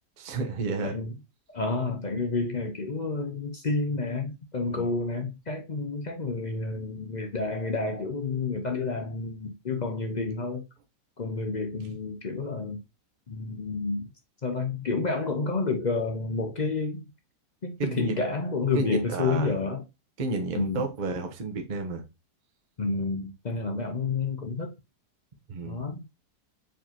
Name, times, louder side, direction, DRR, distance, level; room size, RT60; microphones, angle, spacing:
voice 1, 0.2-1.0 4.7-4.9 17.8-18.2 18.7-19.5 20.2-22.0 25.5-25.8, right 3 dB, 40° right, 0.7 m, -31 dB
voice 2, 0.8-1.1 1.5-10.6 11.2-12.8 13.3-14.1 14.4-17.0 17.6-19.8 20.5-20.9 22.8-24.7 25.7-26.0, left 3 dB, 50° left, 0.5 m, -30 dB
4.7 x 3.8 x 2.9 m
omnidirectional pair, 1.8 m